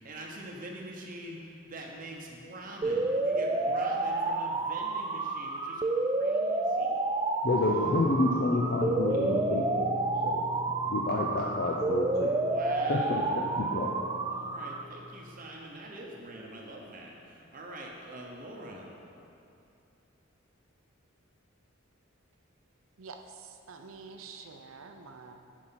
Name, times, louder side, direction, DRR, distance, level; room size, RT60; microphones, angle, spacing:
voice 1, 0.0-7.0 12.2-13.4 14.3-18.9, right 1 dB, 40° right, -1 dB, 0.9 m, -44 dB
sound 1, 2.8-14.8, right 2 dB, 20° right, 0.3 m, -30 dB
voice 2, 7.4-9.9 10.2-10.4 10.9-12.3 12.9-13.9, left 2 dB, 50° left, -2 dB, 0.6 m, -29 dB
sound 2, 7.8-15.4, left 2 dB, 10° left, 2.2 m, -42 dB
voice 3, 23.0-25.3, right 4 dB, 80° right, 5 dB, 0.7 m, -47 dB
9.8 x 4.6 x 5.8 m, 2.7 s
head